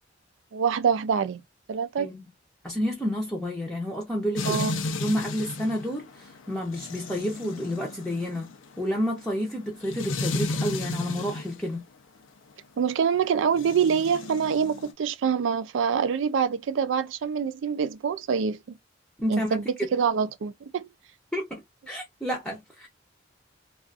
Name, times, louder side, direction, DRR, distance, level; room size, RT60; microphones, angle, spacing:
voice 1, 0.5-1.4 1.7-2.1 4.4-4.8 12.8-18.6 19.3-20.9, right 6 dB, 70° right, 0.3 m, -25 dB
voice 2, 2.6-4.6 5.0-8.5 8.8-11.8 19.2-20.0 21.3-22.9, equal, 5° left, 0.6 m, -30 dB
sound 1, 4.4-11.6 13.5-14.9, left 3 dB, 85° left, 0.6 m, -33 dB
2.4 x 2.4 x 2.3 m
head